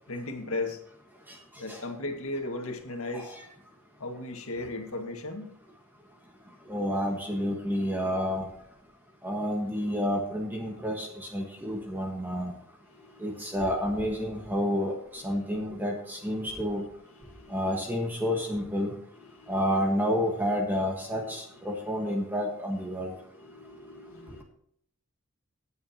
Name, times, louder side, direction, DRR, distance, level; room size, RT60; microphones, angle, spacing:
voice 1, 0.1-0.8 1.6-3.3 4.0-5.5 16.4-16.5 17.4-17.6 19.4-19.5 23.4-24.4, left 2 dB, 70° left, 4 dB, 2.0 m, -36 dB
voice 2, 6.7-8.4 9.2-12.5 13.2-16.8 17.5-18.9 19.5-23.1, equal, 10° right, 0 dB, 1.5 m, -29 dB
17.5 x 9.4 x 2.9 m, 0.67 s
head